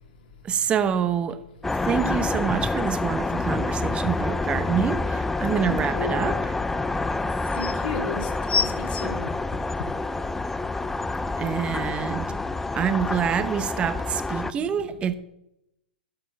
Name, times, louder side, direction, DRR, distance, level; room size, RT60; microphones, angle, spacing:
voice 1, 0.4-1.4 1.8-6.3 11.4-12.4 12.7-15.1, right 8 dB, 20° right, 0.8 m, -26 dB
sound 1, 1.6-14.5, left 3 dB, 5° left, 0.3 m, -28 dB
voice 2, 5.5-6.4 7.5-9.4 12.9-13.1, left 5 dB, 60° left, 2.6 m, -34 dB
sound 2, 7.2-7.8 8.5-10.1 10.8-10.9, left 5 dB, 80° left, 0.9 m, -28 dB
11.5 x 6.5 x 5.8 m
hypercardioid pair, 130°, 5 cm